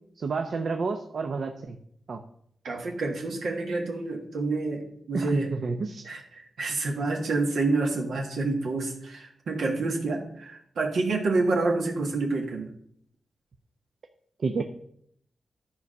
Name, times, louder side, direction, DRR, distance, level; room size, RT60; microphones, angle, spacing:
voice 1, 0.2-1.8 2.1-2.2 5.1-6.1 14.4-14.6, right 4 dB, 60° right, 6 dB, 0.7 m, -30 dB
voice 2, 2.6-5.5 6.0-12.7, right 3 dB, 80° right, 0 dB, 1.7 m, -28 dB
12.0 x 4.7 x 5.4 m, 0.69 s
wide cardioid pair, 110°, 0 cm